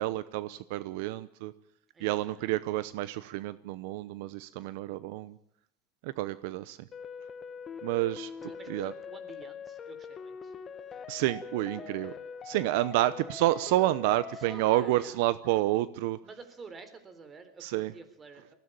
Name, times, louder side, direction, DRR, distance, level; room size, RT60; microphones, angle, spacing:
voice 1, 0.0-1.5 2.0-5.4 6.0-6.9 7.8-8.3 8.7-8.9 11.1-12.1 12.5-16.2 17.6-17.9, right 16 dB, 70° right, 16 dB, 0.8 m, -29 dB
voice 2, 1.9-2.5 8.4-10.5 11.7-12.2 14.3-15.2 16.2-18.5, right 4 dB, 25° right, 11 dB, 3.7 m, -50 dB
sound 1, 6.9-14.9, left 6 dB, 25° left, 1.5 m, -43 dB
20.5 x 16.5 x 8.9 m, 0.71 s
supercardioid pair, 130°, 0 cm